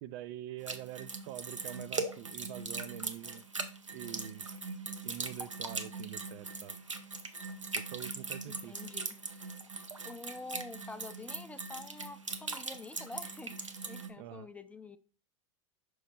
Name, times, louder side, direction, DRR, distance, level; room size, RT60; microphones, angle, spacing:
voice 1, 0.0-3.4 3.9-4.5 5.0-6.8 7.7-8.8 14.2-14.5, right 13 dB, 50° right, 0.4 m, -45 dB
sound 1, 0.7-14.1, right 3 dB, 90° right, 0.7 m, -40 dB
voice 2, 8.5-9.2 9.8-15.0, left 3 dB, 10° left, 0.5 m, -47 dB
5.7 x 3.1 x 5.2 m
figure-of-eight pair, 85°, 16 cm